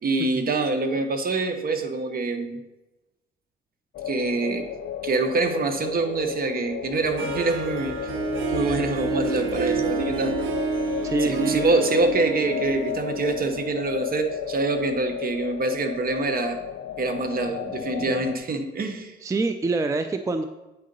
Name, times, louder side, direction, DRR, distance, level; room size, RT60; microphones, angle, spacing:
voice 1, 0.0-2.6 4.1-4.7 5.0-8.0 8.5-10.3 11.2-16.6 17.0-19.2, right 3 dB, 50° right, 6 dB, 1.0 m, -25 dB
sound 1, 3.9-18.4, left 9 dB, 70° left, 0.6 m, -33 dB
Harp, 7.2-14.1, right 6 dB, 85° right, 0.8 m, -30 dB
voice 2, 11.0-11.6 18.1-18.3 19.2-20.4, right 3 dB, 15° right, 8 dB, 0.4 m, -26 dB
8.5 x 3.8 x 5.2 m, 1.0 s
cardioid pair, 90°, 20 cm